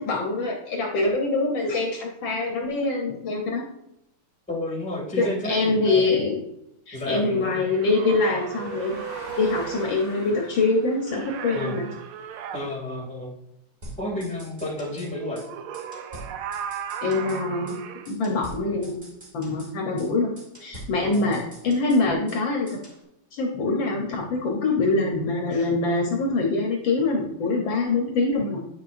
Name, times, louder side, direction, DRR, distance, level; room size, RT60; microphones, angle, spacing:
voice 1, 0.0-3.7 5.2-6.4 6.9-9.0 9.4-11.9 17.0-17.8 18.1-19.0 19.3-20.3 20.6-22.7 23.3-28.6, left 3 dB, 65° left, 1 dB, 1.5 m, -24 dB
voice 2, 4.5-6.1 6.9-7.5 11.5-11.8 12.5-13.3 14.0-15.5 21.0-21.4, left 1 dB, 5° left, -4 dB, 2.0 m, -31 dB
sound 1, 7.1-12.7, right 1 dB, 50° right, 2.1 m, -44 dB
sound 2, 7.6-10.0 11.1-12.6 15.2-18.1, right 8 dB, 80° right, 1.4 m, -36 dB
sound 3, 13.8-15.1 15.4-15.5 15.7-17.4 17.7-17.8 18.0-19.7 20.0-20.1 20.4-22.4 22.7-23.0, right 1 dB, 20° right, 1.5 m, -44 dB
8.7 x 5.9 x 2.5 m, 0.81 s
omnidirectional pair, 2.4 m